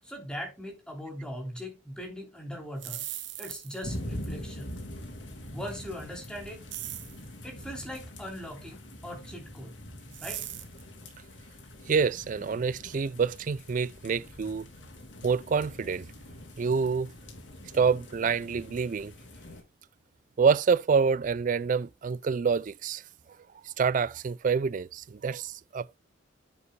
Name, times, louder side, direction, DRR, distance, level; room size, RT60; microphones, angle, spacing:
voice 1, 0.0-3.0 3.4-4.7 5.5-6.7 7.4-9.8 10.2-10.4, equal, 5° left, 3.3 m, -40 dB
sound 1, 2.6-3.9 6.7-7.2 10.1-10.8, right 13 dB, 75° right, 1.2 m, -39 dB
sound 2, 3.8-19.6, left 1 dB, 85° left, 2.7 m, -44 dB
voice 2, 11.9-14.7 15.2-16.1 16.6-17.1 17.7-19.1 20.4-23.0 23.8-26.0, right 5 dB, 45° right, 0.4 m, -27 dB
9.6 x 7.9 x 2.2 m
head